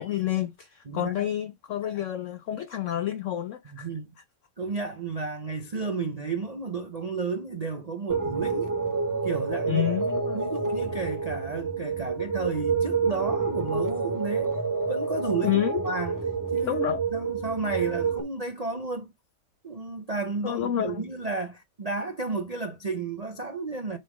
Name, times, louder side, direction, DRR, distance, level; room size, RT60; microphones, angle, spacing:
voice 1, 0.0-3.9 9.7-10.4 15.4-15.8 16.6-17.0 20.4-21.0, left 11 dB, 90° left, 0.6 m, -29 dB
voice 2, 0.9-1.3 3.7-4.1 4.6-8.7 9.2-10.0 10.3-14.5 14.9-16.1 16.5-16.8 17.1-19.1 19.6-24.0, right 4 dB, 65° right, 0.4 m, -32 dB
sound 1, 8.1-18.2, right 4 dB, 15° right, 1.0 m, -28 dB
7.6 x 3.8 x 4.9 m
omnidirectional pair, 1.9 m